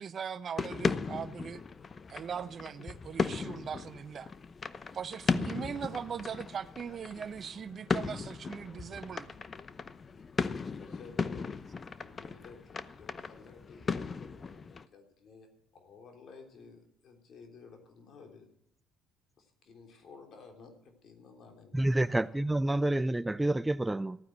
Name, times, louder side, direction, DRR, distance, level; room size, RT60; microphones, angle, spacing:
voice 1, 0.0-1.6 2.1-4.3 4.9-9.3, right 7 dB, 45° right, 0.7 m, -40 dB
sound 1, 0.6-14.9, left 5 dB, 35° left, 0.8 m, -36 dB
voice 2, 10.8-18.5 19.4-22.3, left 5 dB, 55° left, 3.5 m, -53 dB
voice 3, 21.7-24.2, right 1 dB, 10° right, 0.5 m, -28 dB
15.0 x 9.5 x 7.9 m
hypercardioid pair, 65°, 0 cm